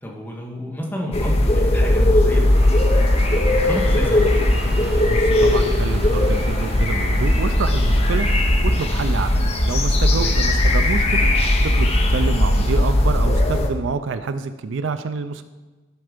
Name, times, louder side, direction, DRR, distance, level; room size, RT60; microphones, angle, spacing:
voice 1, 0.0-2.8 3.1-4.2 10.1-10.4, equal, 10° left, -2 dB, 1.3 m, -31 dB
sound 1, 1.1-13.7, left 1 dB, 30° left, 0.7 m, -18 dB
Train, 1.6-10.8, right 1 dB, 30° right, 0.9 m, -37 dB
voice 2, 5.1-8.3 8.6-11.3 11.6-15.4, right 4 dB, 65° right, 11 dB, 0.4 m, -27 dB
11.5 x 4.5 x 5.1 m, 1.2 s
head